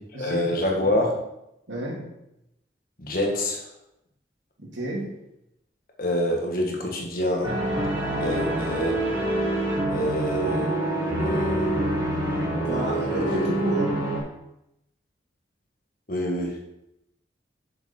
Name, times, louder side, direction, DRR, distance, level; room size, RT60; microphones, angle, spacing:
voice 1, 0.2-1.1 3.0-3.6 6.0-7.6 8.2-9.0 9.9-10.7 11.2-11.7 12.6-13.4 16.1-16.6, left 1 dB, 50° left, 0 dB, 1.7 m, -26 dB
voice 2, 1.7-2.0 4.6-5.0 12.7-14.0, right 1 dB, 90° right, -3 dB, 2.7 m, -30 dB
sound 1, 7.4-14.2, right 1 dB, 20° right, 2.5 m, -26 dB
7.0 x 6.9 x 4.5 m, 0.85 s
head